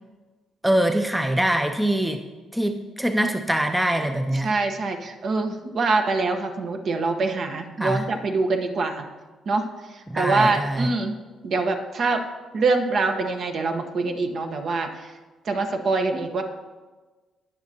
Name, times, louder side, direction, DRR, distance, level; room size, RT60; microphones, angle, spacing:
voice 1, 0.6-2.2 2.5-4.5 7.8-8.0 10.1-10.9, right 1 dB, 5° right, 6 dB, 0.6 m, -23 dB
voice 2, 4.4-9.0 9.5-9.6 9.9-11.2 11.4-12.2 12.5-15.1 15.4-16.4, right 3 dB, 60° right, 4 dB, 1.1 m, -24 dB
19.0 x 6.3 x 2.9 m, 1.3 s
cardioid pair, 90°, 0 cm